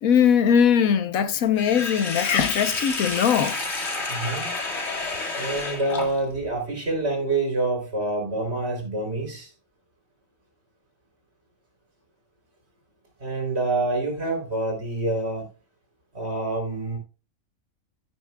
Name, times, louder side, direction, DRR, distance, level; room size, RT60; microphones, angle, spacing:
voice 1, 0.0-3.6, left 8 dB, 85° left, 1.3 m, -20 dB
Sink (filling or washing), 1.6-6.5, left 3 dB, 55° left, 2.3 m, -30 dB
voice 2, 4.1-4.5 5.4-9.5 13.2-15.5 16.1-17.0, right 2 dB, 50° right, 3.9 m, -27 dB
15.0 x 7.0 x 2.3 m
omnidirectional pair, 1.4 m